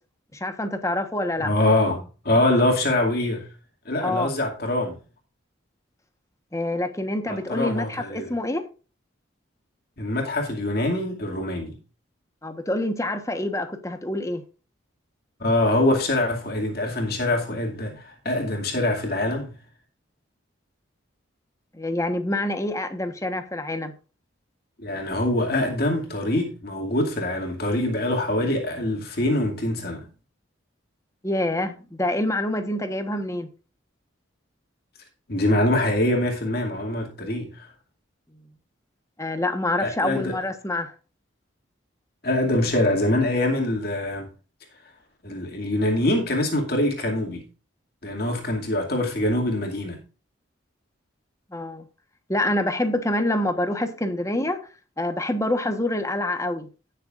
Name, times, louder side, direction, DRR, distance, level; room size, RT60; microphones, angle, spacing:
voice 1, 0.3-1.5 4.0-4.3 6.5-8.7 12.4-14.4 21.7-23.9 31.2-33.5 39.2-40.9 51.5-51.8 52.3-54.6 55.0-56.7, left 1 dB, 15° left, 1.2 m, -26 dB
voice 2, 1.4-3.5 3.9-5.0 7.3-8.3 10.0-11.8 15.4-19.5 24.8-30.1 35.3-37.7 39.8-40.3 42.2-44.3 45.2-47.4 48.0-50.0, left 1 dB, 50° left, 2.4 m, -24 dB
17.5 x 6.7 x 2.5 m
head